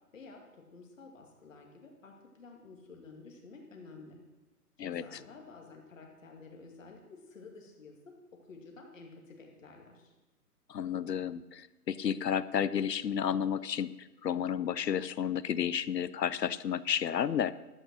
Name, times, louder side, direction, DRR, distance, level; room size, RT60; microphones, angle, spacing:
voice 1, 0.1-4.2 4.8-8.0 8.5-10.1, left 3 dB, 50° left, 1 dB, 2.3 m, -51 dB
voice 2, 10.7-17.5, left 8 dB, 80° left, 17 dB, 0.8 m, -32 dB
12.0 x 8.3 x 6.3 m, 1.1 s
hypercardioid pair, 160°, 48 cm